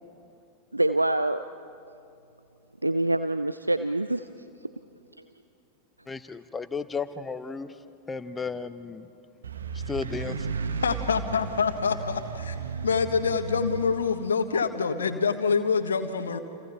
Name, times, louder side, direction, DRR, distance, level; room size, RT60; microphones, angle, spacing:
voice 1, 0.7-1.4 2.8-4.3, right 2 dB, 85° right, 11 dB, 0.5 m, -25 dB
voice 2, 6.1-7.8 8.1-9.1 9.7-10.5, left 5 dB, 15° left, 12 dB, 0.8 m, -34 dB
sound 1, 9.4-14.0, right 5 dB, 70° right, 1.3 m, -34 dB
voice 3, 10.8-12.5 12.8-16.4, left 5 dB, 70° left, 9 dB, 1.4 m, -26 dB
30.0 x 29.0 x 4.5 m, 2.6 s
figure-of-eight pair, 90°, 0 cm